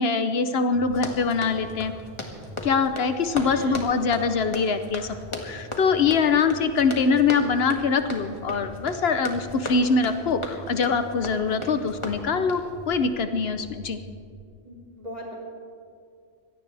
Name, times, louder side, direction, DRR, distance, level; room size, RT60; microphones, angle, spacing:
voice 1, 0.0-1.9 2.6-5.2 5.4-14.0, left 5 dB, 70° left, 9 dB, 1.0 m, -23 dB
sound 1, 0.7-14.4, right 1 dB, 90° right, 2.8 m, -45 dB
Run, 0.9-12.7, left 1 dB, 30° left, 1.6 m, -37 dB
voice 2, 3.4-3.8 14.6-15.3, equal, 40° right, -4 dB, 4.2 m, -38 dB
23.5 x 17.0 x 3.4 m, 2.3 s
omnidirectional pair, 1.1 m